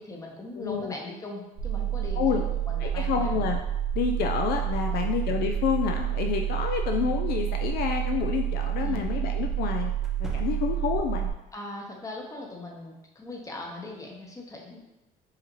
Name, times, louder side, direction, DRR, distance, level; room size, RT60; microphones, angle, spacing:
voice 1, 0.0-3.3 4.9-5.1 8.8-9.1 11.5-14.8, left 2 dB, 20° left, 0 dB, 0.8 m, -40 dB
voice 2, 0.6-1.0 2.2-2.4 2.8-3.6 4.0-9.9 10.2-11.3, left 8 dB, 70° left, 4 dB, 0.4 m, -28 dB
sound 1, 1.6-11.3, right 11 dB, 70° right, 0.6 m, -29 dB
sound 2, 7.8-7.9 10.0-11.0, right 1 dB, 5° right, 0.5 m, -42 dB
4.8 x 2.8 x 3.0 m, 0.95 s
cardioid pair, 110°, 17 cm